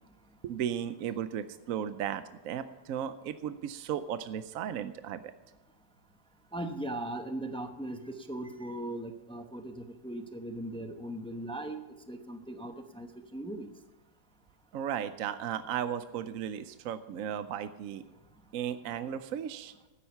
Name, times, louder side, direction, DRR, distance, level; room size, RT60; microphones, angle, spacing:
voice 1, 0.4-5.2 14.7-18.0 18.5-19.7, right 9 dB, 65° right, 11 dB, 0.9 m, -35 dB
voice 2, 6.5-11.8 12.1-13.7, right 1 dB, 10° left, 6 dB, 0.3 m, -39 dB
12.5 x 10.0 x 5.7 m, 1.1 s
omnidirectional pair, 1.8 m